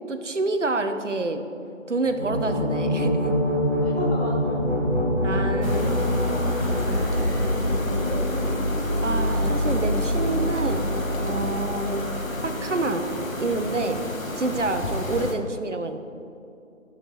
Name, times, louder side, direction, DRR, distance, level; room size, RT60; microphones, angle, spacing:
voice 1, 0.1-1.4 1.9-3.3 5.2-6.1 9.0-12.1 12.4-13.1 13.4-14.1 14.4-16.0, right 2 dB, 65° right, 8 dB, 0.8 m, -28 dB
sound 1, 2.0-12.6, left 1 dB, ahead, 1.7 m, -25 dB
voice 2, 3.8-4.6 5.3-5.9 6.3-8.2 15.0-15.2, left 1 dB, 50° left, -4 dB, 1.5 m, -36 dB
sound 2, 5.6-15.4, left 2 dB, 85° left, 1.1 m, -32 dB
sound 3, 5.8-14.6, right 1 dB, 40° right, 1.1 m, -38 dB
12.0 x 6.5 x 3.1 m, 2.6 s
figure-of-eight pair, 165°, 40 cm